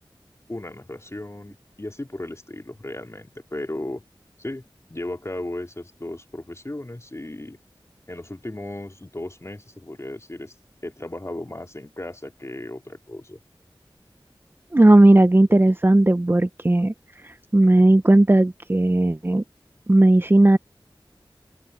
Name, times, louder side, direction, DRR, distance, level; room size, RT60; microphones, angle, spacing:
voice 1, 0.5-4.0 4.4-4.6 4.9-7.6 8.1-10.5 10.8-13.4, left 1 dB, 35° left, 4.2 m, -35 dB
voice 2, 14.7-16.9 17.2-19.4 19.9-20.6, right 1 dB, 25° right, 0.6 m, -16 dB
open air
wide cardioid pair, 55°, 9 cm